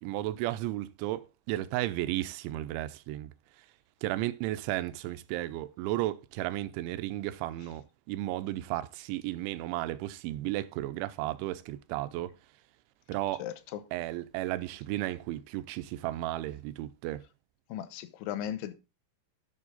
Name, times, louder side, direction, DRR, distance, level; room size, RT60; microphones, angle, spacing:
voice 1, 0.0-3.3 4.0-12.3 13.1-13.4 13.9-17.2, right 15 dB, 85° right, 3.0 m, -34 dB
voice 2, 13.4-13.8 17.7-18.7, left 11 dB, 80° left, 3.2 m, -36 dB
11.0 x 7.1 x 3.9 m
omnidirectional pair, 5.5 m